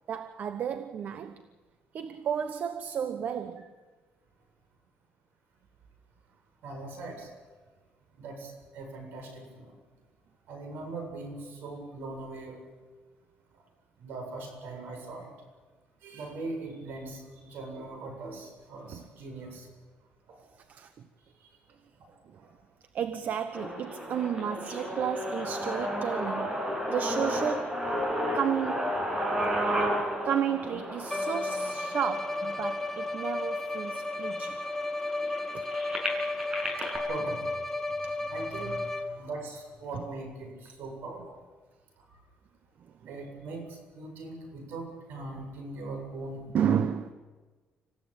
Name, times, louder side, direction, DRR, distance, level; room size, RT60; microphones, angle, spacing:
voice 1, 0.1-1.4 1.9-3.7 18.9-19.1 20.7-21.1 22.3-22.4 22.9-27.8 28.3-29.0 30.2-34.6 35.5-35.6 38.0-38.1 39.9-40.0 46.5-47.1, right 8 dB, 60° right, 1.1 m, -32 dB
voice 2, 6.6-7.3 8.2-9.7 10.5-12.6 14.0-15.3 16.0-19.7 20.3-20.4 22.4-22.5 29.4-29.6 37.1-37.5 38.2-41.2 43.1-46.4, right 3 dB, 75° right, 7.9 m, -40 dB
sound 1, 23.5-33.5 34.2-34.3 34.5-37.0, equal, 25° right, 6.9 m, -32 dB
Bowed string instrument, 31.1-39.4, left 2 dB, 10° left, 1.1 m, -33 dB
26.5 x 16.0 x 8.8 m
cardioid pair, 105°, 3 cm